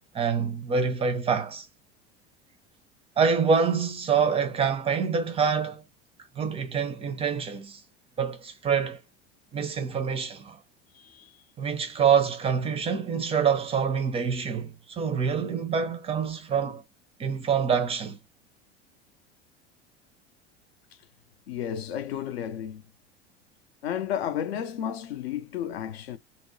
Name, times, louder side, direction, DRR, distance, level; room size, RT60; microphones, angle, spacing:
voice 1, 0.1-1.7 3.2-5.8 6.4-7.8 8.2-9.0 9.5-10.6 11.6-16.8 17.2-18.2, right 6 dB, 20° right, 0.4 m, -26 dB
voice 2, 10.9-11.4 21.5-22.8 23.8-26.2, left 9 dB, 65° left, 0.5 m, -32 dB
2.6 x 2.0 x 2.5 m
figure-of-eight pair, 70°, 33 cm